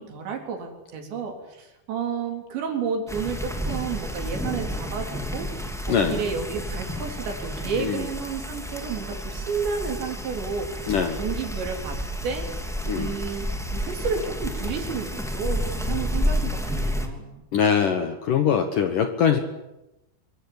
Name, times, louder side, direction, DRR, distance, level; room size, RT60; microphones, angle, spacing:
voice 1, 0.0-5.5 5.9-12.0 12.2-12.5 13.0-13.5 13.7-17.3, right 6 dB, 70° right, 3 dB, 5.9 m, -31 dB
sound 1, 3.1-17.1, equal, ahead, 1.6 m, -30 dB
voice 2, 5.9-6.2 7.8-8.0 10.9-11.2 12.9-13.1 17.5-19.4, left 7 dB, 65° left, 7 dB, 2.3 m, -22 dB
24.0 x 23.5 x 8.9 m, 0.92 s
omnidirectional pair, 5.4 m